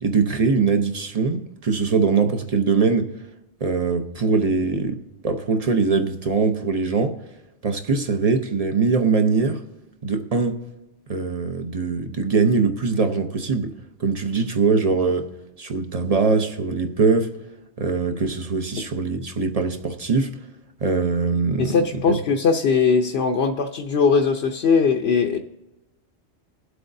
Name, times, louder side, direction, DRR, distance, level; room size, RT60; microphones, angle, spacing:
voice 1, 0.0-3.1 3.6-5.0 5.2-7.1 7.6-9.6 10.0-10.6 11.1-13.7 14.0-15.2 15.6-17.3 17.8-20.3 20.8-21.7 22.1-22.2, right 4 dB, 40° right, 0.7 m, -22 dB
voice 2, 21.6-25.4, left 5 dB, 65° left, 0.9 m, -20 dB
21.5 x 7.9 x 2.6 m
omnidirectional pair, 1.2 m